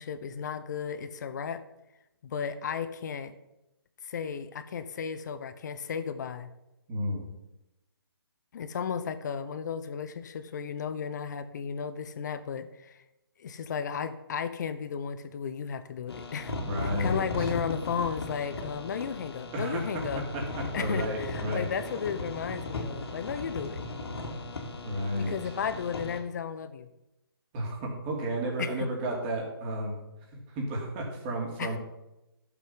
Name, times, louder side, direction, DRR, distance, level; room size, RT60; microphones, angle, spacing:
voice 1, 0.0-1.6 2.2-3.3 4.0-6.5 8.5-13.0 13.4-20.2 20.7-23.8 25.2-26.9 28.6-28.9 31.6-31.7, left 7 dB, 45° left, 11 dB, 0.9 m, -34 dB
voice 2, 6.9-7.3 16.6-17.5 19.5-19.8 20.1-21.7 24.8-25.4 27.5-29.9 30.3-31.8, right 1 dB, 25° right, -1 dB, 3.0 m, -32 dB
sound 1, 16.1-26.2, left 2 dB, 70° left, 2.5 m, -37 dB
11.5 x 7.3 x 5.8 m, 0.94 s
hypercardioid pair, 150°, 13 cm